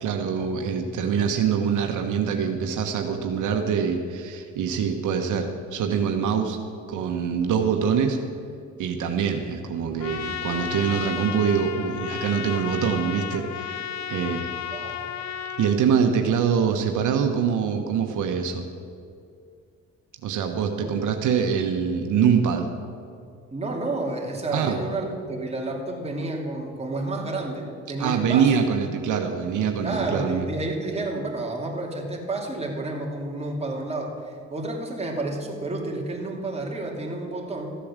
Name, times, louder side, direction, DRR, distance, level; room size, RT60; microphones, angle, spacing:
voice 1, 0.0-6.6 6.9-8.2 8.8-14.5 15.6-18.7 20.2-22.7 24.5-24.8 28.0-30.5, right 7 dB, 80° right, 4 dB, 1.1 m, -24 dB
Trumpet, 10.0-15.8, left 9 dB, 65° left, 0.9 m, -33 dB
voice 2, 14.7-15.0 20.8-21.0 23.5-28.7 29.8-37.7, right 2 dB, 20° right, -1 dB, 2.8 m, -30 dB
14.5 x 8.5 x 7.4 m, 2.4 s
cardioid pair, 90°, 30 cm